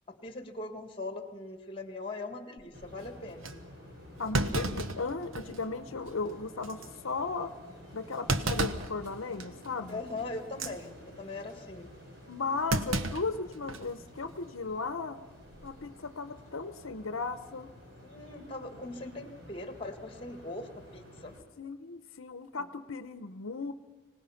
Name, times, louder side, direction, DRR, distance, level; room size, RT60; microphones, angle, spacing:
voice 1, 0.1-3.6 9.9-11.9 18.0-21.3, left 2 dB, 25° left, 7 dB, 1.8 m, -41 dB
Thump thud, 2.6-2.9 3.4-3.5 4.3-5.7 6.1-6.2 6.6-6.9 8.3-8.9 9.4-9.7 10.4-10.7 12.7-13.9 14.2-14.3 15.5-15.8, right 2 dB, 80° right, 1.1 m, -32 dB
sound 1, 2.7-21.4, equal, 50° right, 4.8 m, -51 dB
voice 2, 4.2-7.5 7.9-10.0 12.3-15.2 15.6-17.7 21.6-23.7, left 4 dB, 85° left, 11 dB, 0.8 m, -36 dB
25.0 x 18.5 x 5.8 m, 1.2 s
head